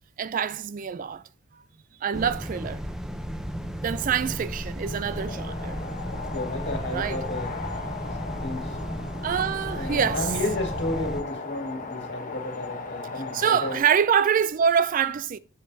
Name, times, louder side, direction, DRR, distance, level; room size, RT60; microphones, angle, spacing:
voice 1, 0.2-1.2 2.0-2.8 3.8-5.8 6.9-7.2 9.2-10.2 13.3-15.4, right 7 dB, 40° right, 0.3 m, -25 dB
sound 1, 2.1-11.2, equal, 5° right, 0.6 m, -34 dB
voice 2, 4.0-4.4 6.3-7.6 8.1-9.1 9.8-13.8, left 1 dB, 55° left, 1.9 m, -33 dB
sound 2, 5.1-13.8, left 4 dB, 40° left, 0.9 m, -36 dB
7.5 x 7.2 x 2.7 m
head